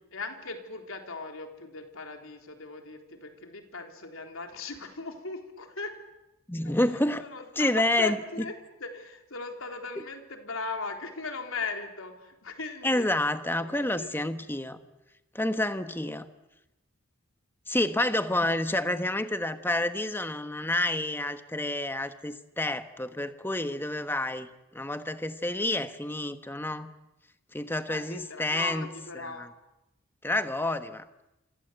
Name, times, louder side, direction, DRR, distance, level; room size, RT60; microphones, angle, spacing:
voice 1, 0.1-5.9 6.6-8.5 8.8-13.1 13.6-14.3 27.9-29.5, left 3 dB, 80° left, 4 dB, 3.7 m, -38 dB
voice 2, 6.5-7.2 7.6-8.2 12.8-14.8 15.3-16.3 17.7-24.5 24.7-26.9 27.5-28.9 29.2-29.5 30.2-31.0, left 1 dB, 10° left, 10 dB, 1.3 m, -29 dB
27.5 x 26.0 x 8.1 m, 0.95 s
head